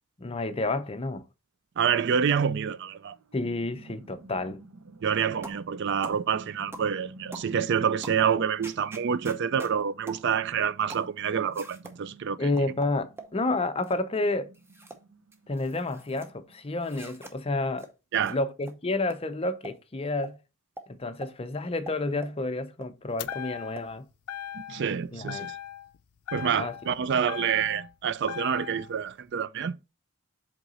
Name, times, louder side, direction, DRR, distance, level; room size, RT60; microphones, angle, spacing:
voice 1, 0.2-1.2 3.3-4.6 12.4-14.5 15.5-17.9 18.3-20.4 20.9-24.1 25.1-25.5 26.6-26.7, left 2 dB, 25° left, 0.5 m, -30 dB
voice 2, 1.8-3.2 5.0-12.5 18.1-18.4 24.7-25.6 26.3-29.7, right 7 dB, 50° right, 0.4 m, -27 dB
sound 1, 2.9-17.2, right 2 dB, 70° right, 0.7 m, -52 dB
sound 2, 5.4-5.7 6.0-6.2 6.7-6.9 7.3-7.5 8.0-8.2 8.6-9.7 10.1-10.3 10.9-11.1 11.5-12.0 12.6-13.3 13.8-14.1 14.5-15.0 15.3-16.3 16.8-17.3 17.8-17.9 18.2-18.4 18.6-18.7 19.1-19.2 19.6-19.8 20.2-20.3 20.8-20.9 21.2-21.3 21.9-22.4 22.8-22.9 23.3-23.4 23.8-23.9, right 2 dB, 10° right, 0.8 m, -43 dB
sound 3, 23.2-23.9 24.3-24.9 25.3-26.0 26.3-27.9 28.3-28.9, left 11 dB, 85° left, 0.4 m, -38 dB
7.8 x 3.7 x 4.0 m
head